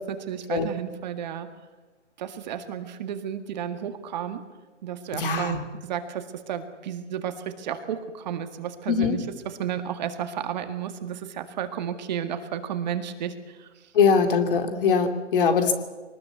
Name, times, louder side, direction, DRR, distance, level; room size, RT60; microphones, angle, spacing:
voice 1, 0.1-1.5 2.2-4.4 4.8-13.7, right 9 dB, 35° right, 8 dB, 1.9 m, -32 dB
voice 2, 5.1-5.6 8.9-9.2 13.9-15.7, left 5 dB, 45° left, 7 dB, 2.8 m, -22 dB
23.5 x 19.5 x 8.3 m, 1.3 s
hypercardioid pair, 150°, 37 cm